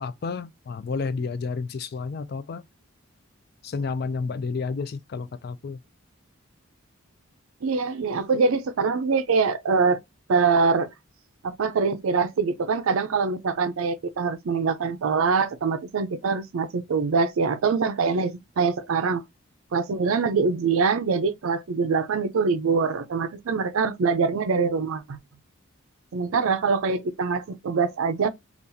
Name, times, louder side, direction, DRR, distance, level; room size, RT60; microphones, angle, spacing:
voice 1, 0.0-2.6 3.6-5.8, left 4 dB, 45° left, 0.3 m, -31 dB
voice 2, 7.6-10.0 10.3-10.9 11.4-19.2 19.7-25.2 26.1-28.3, right 5 dB, 75° right, 0.4 m, -24 dB
3.8 x 2.4 x 2.6 m
head